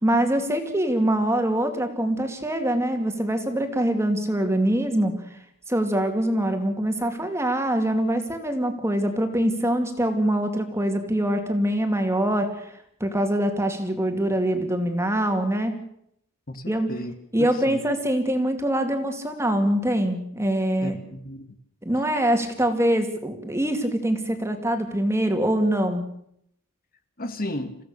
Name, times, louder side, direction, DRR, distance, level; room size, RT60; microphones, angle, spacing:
voice 1, 0.0-5.1 5.7-12.7 13.0-15.7 16.7-16.9 17.3-21.0 21.8-26.0, right 1 dB, 10° right, 5 dB, 2.4 m, -24 dB
voice 2, 16.5-17.1 17.4-17.8 20.8-21.6 27.2-27.8, left 1 dB, 40° left, 8 dB, 1.7 m, -34 dB
28.5 x 16.0 x 6.7 m, 0.72 s
head